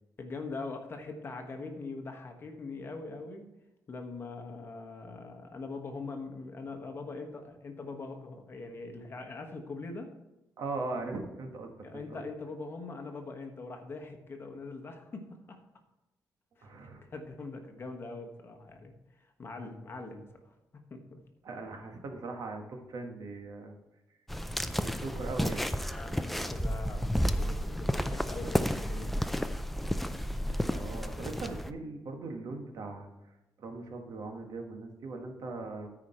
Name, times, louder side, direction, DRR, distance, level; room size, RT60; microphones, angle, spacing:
voice 1, 0.2-3.5 3.9-10.1 11.8-15.6 16.6-20.5 20.9-21.2 25.9-29.3, left 3 dB, 35° left, 5 dB, 1.2 m, -42 dB
voice 2, 10.6-12.2 16.6-17.0 21.4-23.8 24.7-25.7 30.7-33.1 33.6-35.9, right 3 dB, 70° right, 4 dB, 1.4 m, -40 dB
sound 1, 24.3-31.7, equal, ahead, 0.4 m, -32 dB
13.5 x 5.0 x 4.3 m, 0.96 s
wide cardioid pair, 140°, 6 cm